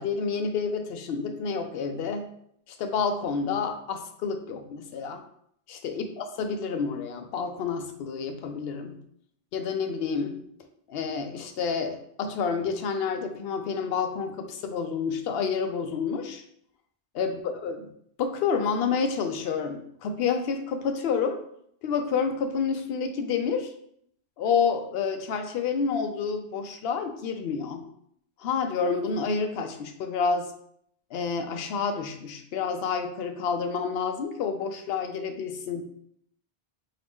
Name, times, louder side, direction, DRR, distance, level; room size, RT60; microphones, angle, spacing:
voice 1, 0.0-2.3 2.8-5.2 5.7-9.0 9.5-10.4 10.9-16.4 17.1-17.9 18.2-21.4 21.8-23.7 24.4-27.8 28.4-30.5 31.1-35.8, left 5 dB, 70° left, 6 dB, 0.8 m, -29 dB
4.0 x 2.8 x 3.5 m, 0.69 s
omnidirectional pair, 1.1 m